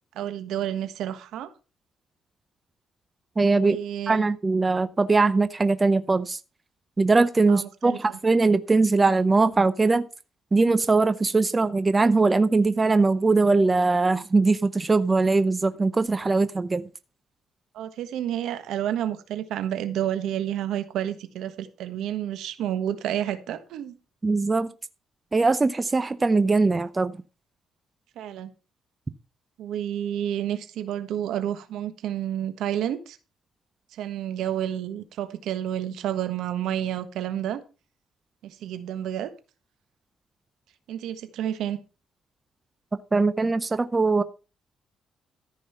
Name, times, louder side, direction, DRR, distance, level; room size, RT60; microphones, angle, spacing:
voice 1, 0.1-1.5 3.6-4.2 7.5-8.2 17.7-24.0 28.2-28.5 29.6-33.2 33.9-37.6 38.4-39.3 40.9-41.8, right 11 dB, 80° right, 1.3 m, -30 dB
voice 2, 3.4-3.8 4.1-6.4 7.0-10.0 10.5-16.9 24.2-24.7 25.3-27.1 43.1-44.2, right 3 dB, 25° right, 0.6 m, -21 dB
13.5 x 5.5 x 5.6 m
cardioid pair, 90°, 0 cm